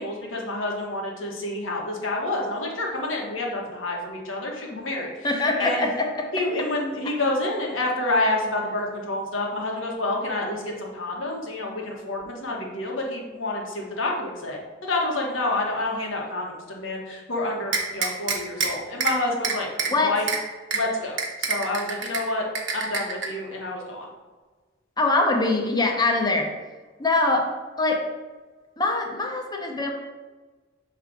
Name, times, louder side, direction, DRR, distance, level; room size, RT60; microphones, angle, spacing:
voice 1, 0.0-5.3 5.6-5.9 6.3-20.2 20.7-22.4 22.7-24.1, left 2 dB, 85° left, -1 dB, 1.3 m, -28 dB
voice 2, 5.2-6.3 19.9-20.1 25.0-26.5 27.0-27.5 27.8-28.0 28.8-29.9, left 2 dB, 20° left, 1 dB, 0.8 m, -23 dB
sound 1, 17.7-18.7 19.0-19.1 19.4-19.9 20.3-20.4 20.7-20.8 21.2-22.2 22.5-23.3, right 5 dB, 65° right, 1.0 m, -25 dB
6.2 x 3.3 x 4.9 m, 1.3 s
head